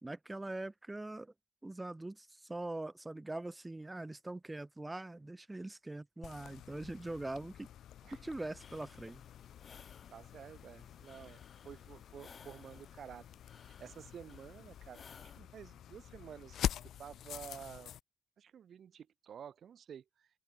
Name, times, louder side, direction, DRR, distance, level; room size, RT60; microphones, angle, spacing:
voice 1, 0.0-1.3 1.6-7.7 8.1-9.2, right 2 dB, 15° right, 0.8 m, -42 dB
sound 1, 6.2-18.0, left 11 dB, 75° left, 0.4 m, -46 dB
sound 2, 8.6-15.4, left 6 dB, 40° left, 4.0 m, -59 dB
voice 2, 10.1-13.2 13.5-16.6 17.0-17.9 18.4-20.3, right 8 dB, 60° right, 1.6 m, -51 dB
cardioid pair, 110°, 0 cm